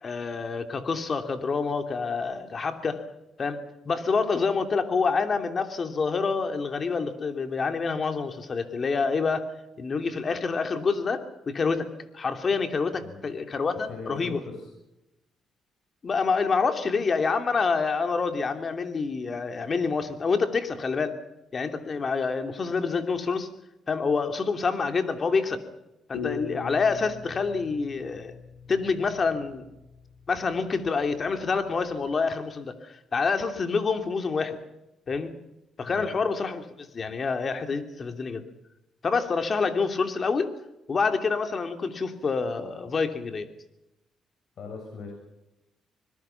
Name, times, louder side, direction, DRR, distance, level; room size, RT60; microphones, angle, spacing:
voice 1, 0.0-3.0 3.4-9.5 9.8-11.9 12.1-14.4 16.0-21.2 21.5-23.5 23.9-25.6 26.1-28.4 28.7-29.6 30.3-34.6 35.1-35.3 35.8-38.4 39.0-40.5 40.9-43.5, left 4 dB, 40° left, 6 dB, 2.9 m, -27 dB
voice 2, 13.8-14.7 35.9-36.1 44.6-45.1, left 4 dB, 60° left, 1 dB, 7.2 m, -39 dB
sound 1, 26.1-29.1, left 6 dB, 85° left, 4.2 m, -39 dB
25.5 x 21.5 x 5.9 m, 0.93 s
cardioid pair, 90°, 0 cm